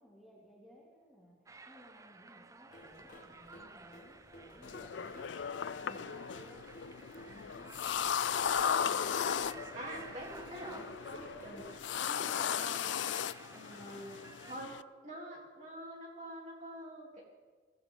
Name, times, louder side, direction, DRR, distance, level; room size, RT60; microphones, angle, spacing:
voice 1, 0.0-5.4 5.8-8.0, equal, ahead, -5 dB, 2.9 m, -59 dB
sound 1, 1.5-14.5, right 3 dB, 15° right, 0.5 m, -54 dB
sound 2, 2.7-11.9, equal, 45° left, 1.7 m, -55 dB
sound 3, 4.6-14.8, left 8 dB, 85° left, 0.4 m, -36 dB
voice 2, 5.8-6.2 8.8-9.4 9.7-11.7 12.0-12.8 13.5-14.2 14.5-14.8 15.0-17.2, right 1 dB, 40° right, -2 dB, 3.5 m, -46 dB
20.5 x 15.0 x 3.9 m, 1.4 s
head